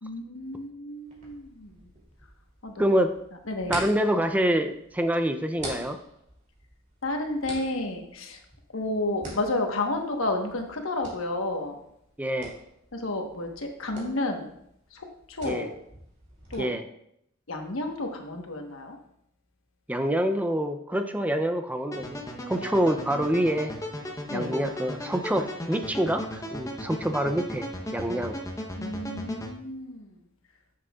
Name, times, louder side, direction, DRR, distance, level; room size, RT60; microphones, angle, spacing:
voice 1, 0.0-1.8 2.6-3.0 3.5-3.8 7.0-8.4 8.7-11.7 12.9-14.5 14.9-15.7 16.5-16.7 17.5-19.0 22.6-22.8 24.3-24.6 28.7-30.1, left 2 dB, 90° left, 3 dB, 1.2 m, -31 dB
sound 1, 1.1-16.6, right 1 dB, 35° right, 2.7 m, -45 dB
voice 2, 2.8-3.2 3.7-6.0 12.2-12.5 15.4-15.7 16.6-16.8 19.9-22.2 22.5-23.7 24.3-28.4, equal, 10° right, 7 dB, 0.4 m, -26 dB
sound 2, 21.9-29.5, left 1 dB, 15° left, 0.8 m, -36 dB
9.7 x 7.6 x 2.4 m, 0.75 s
head